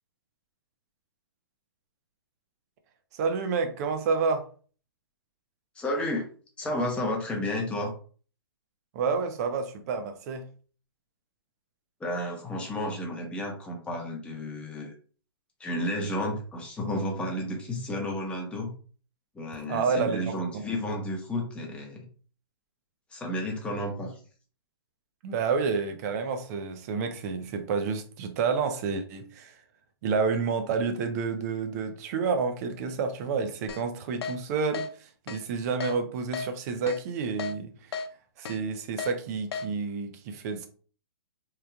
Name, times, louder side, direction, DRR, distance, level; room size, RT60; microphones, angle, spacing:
voice 1, 3.1-4.5 8.9-10.5 19.6-20.7 25.2-29.6 30.0-37.9 38.4-40.7, right 5 dB, 40° right, 0.5 m, -29 dB
voice 2, 5.8-6.3 6.6-7.9 12.0-14.9 15.6-18.7 19.3-22.1 23.1-24.1, left 1 dB, 10° left, 0.7 m, -32 dB
Keyboard (musical), 33.7-33.8 34.2-34.4 34.7-34.9 35.3-35.4 35.8-35.9 36.3-36.5 36.9-37.0 37.4-37.5 37.9-38.1 38.5-38.6 39.0-39.1 39.5-39.7, left 5 dB, 75° left, 0.4 m, -33 dB
3.0 x 2.3 x 2.2 m
hypercardioid pair, 135°, 14 cm